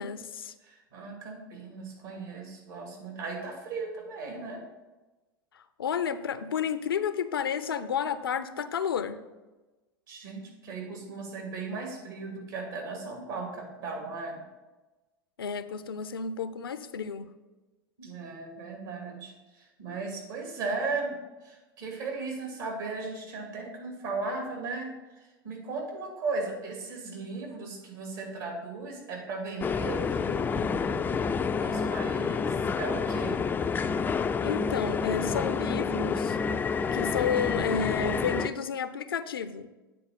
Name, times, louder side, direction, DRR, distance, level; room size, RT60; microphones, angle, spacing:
voice 1, 0.0-0.5 5.5-9.2 15.4-17.3 34.4-36.4 36.9-39.7, left 7 dB, 75° left, 12 dB, 0.5 m, -31 dB
voice 2, 0.6-4.6 10.1-14.4 18.0-21.2 21.4-24.9 25.4-33.4, right 3 dB, 65° right, 0 dB, 2.7 m, -37 dB
sound 1, 29.6-38.5, left 5 dB, 15° left, 0.3 m, -29 dB
8.7 x 4.1 x 6.6 m, 1.1 s
figure-of-eight pair, 85°, 12 cm